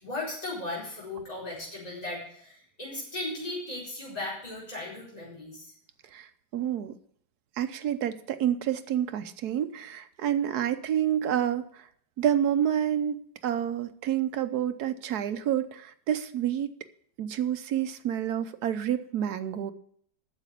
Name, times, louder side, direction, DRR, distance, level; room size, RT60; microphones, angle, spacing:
voice 1, 0.0-5.7, left 2 dB, 20° left, -7 dB, 4.7 m, -37 dB
voice 2, 6.1-6.9 7.6-11.8 12.2-13.1 13.4-16.7 17.2-19.7, right 10 dB, 70° right, 10 dB, 1.2 m, -28 dB
9.0 x 7.1 x 8.3 m, 0.63 s
omnidirectional pair, 1.8 m